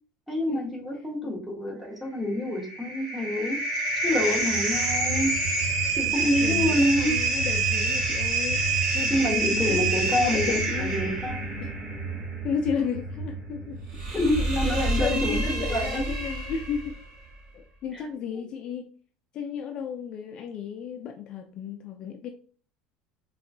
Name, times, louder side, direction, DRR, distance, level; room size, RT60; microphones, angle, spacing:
voice 1, 0.3-3.6 4.0-5.3 6.0-7.2 9.1-11.5 14.1-16.1, left 1 dB, 5° right, -2 dB, 1.0 m, -27 dB
sound 1, 2.3-16.9, right 3 dB, 85° right, 1.7 m, -27 dB
voice 2, 6.0-11.1 11.6-11.7 12.4-13.8 14.7-17.0 17.5-18.9 19.3-22.3, left 7 dB, 35° left, 4 dB, 0.4 m, -34 dB
3.6 x 3.1 x 2.6 m, 0.43 s
cardioid pair, 165°, 2 cm